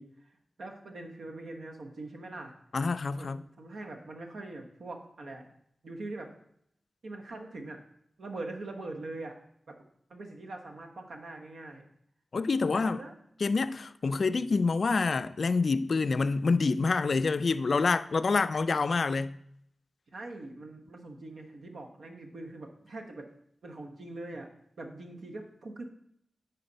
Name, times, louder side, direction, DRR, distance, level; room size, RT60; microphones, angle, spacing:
voice 1, 0.0-2.5 3.1-5.5 5.8-6.3 7.0-7.8 8.2-9.4 9.7-9.8 10.1-11.9 12.7-13.1 20.1-23.3 23.6-24.5 24.8-25.8, right 2 dB, 80° right, 1.1 m, -42 dB
voice 2, 2.7-3.4 12.3-13.0 13.4-19.4, left 4 dB, 65° left, 0.3 m, -27 dB
9.5 x 4.1 x 4.0 m
cardioid pair, 60°, 0 cm